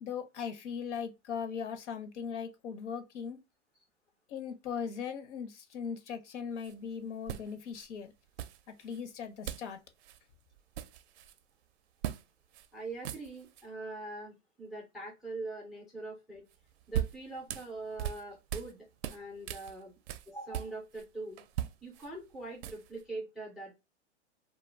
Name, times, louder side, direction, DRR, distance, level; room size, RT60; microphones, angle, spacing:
voice 1, 0.0-3.4 4.3-8.1 8.7-9.8, left 6 dB, 75° left, 0.8 m, -39 dB
sound 1, 6.6-6.7 7.3-7.9 8.4-9.0 9.5-9.7 10.0-10.2 10.5-11.4 12.0-12.2 12.5-12.7 12.9-13.7 16.5-18.7 19.0-21.1 21.4-23.0, right 12 dB, 65° right, 0.5 m, -39 dB
voice 2, 12.7-16.4 16.9-19.9 20.3-21.4 21.8-23.7, right 2 dB, ahead, 0.3 m, -42 dB
2.3 x 2.2 x 3.2 m
hypercardioid pair, 130°, 36 cm